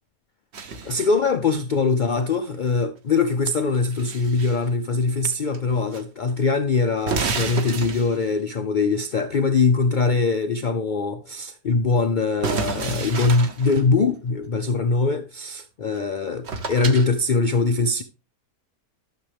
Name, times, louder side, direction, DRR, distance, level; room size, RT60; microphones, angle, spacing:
sound 1, 0.5-1.2 3.6-4.6 5.5-6.0 6.3-6.4 7.0-8.4 12.4-13.9 16.0-16.1 16.4-17.1, right 5 dB, 50° right, 1.1 m, -30 dB
voice 1, 0.8-18.0, left 4 dB, 90° left, 0.4 m, -22 dB
12.0 x 6.6 x 3.4 m
omnidirectional pair, 1.6 m